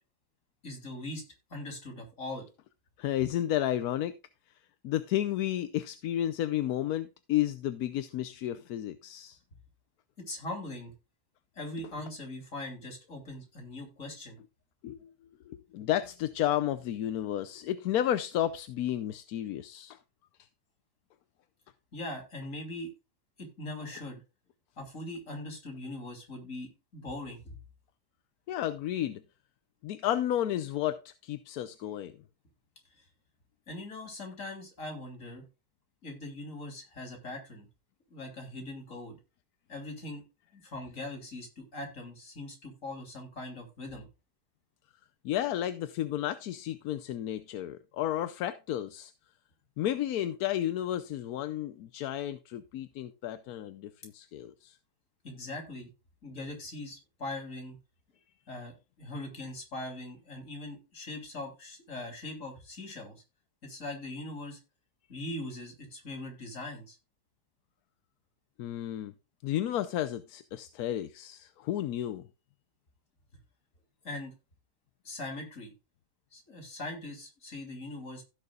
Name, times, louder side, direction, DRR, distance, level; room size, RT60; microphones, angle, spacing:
voice 1, 0.6-1.2 1.5-2.5 10.2-10.9 11.5-14.4 21.9-22.9 23.4-24.2 24.8-27.6 32.9-33.1 33.7-35.4 36.0-37.7 38.1-39.2 39.7-40.2 40.5-44.1 55.2-55.9 56.2-57.8 58.5-63.1 63.6-64.6 65.1-67.0 74.0-74.3 75.0-75.7 76.3-78.2, left 2 dB, 50° left, 3.4 m, -41 dB
voice 2, 3.0-4.1 4.8-9.4 14.8-15.1 15.5-20.0 28.5-29.2 29.8-32.1 45.2-49.1 49.8-54.8 68.6-69.1 69.4-72.2, left 12 dB, 75° left, 1.1 m, -32 dB
16.0 x 6.8 x 2.3 m
omnidirectional pair, 1.7 m